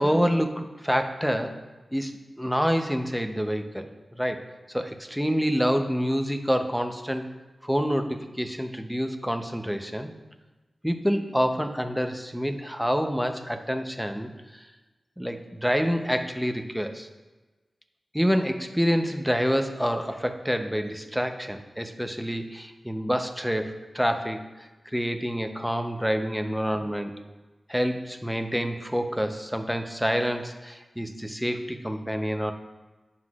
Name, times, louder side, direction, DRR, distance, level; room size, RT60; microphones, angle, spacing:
voice 1, 0.0-1.6 1.9-3.9 4.2-4.4 4.7-7.3 7.6-10.1 10.8-14.3 15.2-17.1 18.1-24.4 24.9-27.1 27.7-32.5, equal, ahead, 6 dB, 0.8 m, -27 dB
9.2 x 5.9 x 2.5 m, 1.2 s
cardioid pair, 40°, 0 cm